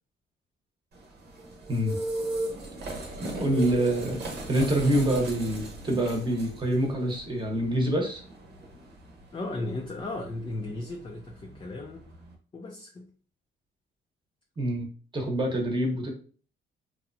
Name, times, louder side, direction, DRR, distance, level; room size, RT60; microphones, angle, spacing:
sound 1, 0.9-12.3, right 2 dB, 55° right, 0.8 m, -39 dB
voice 1, 3.2-4.2 4.5-8.2 14.6-14.9 15.1-16.1, right 1 dB, 25° right, 0.9 m, -26 dB
voice 2, 9.3-12.1 12.5-13.1, left 2 dB, 25° left, 0.4 m, -36 dB
2.8 x 2.2 x 2.6 m
cardioid pair, 90°, 20 cm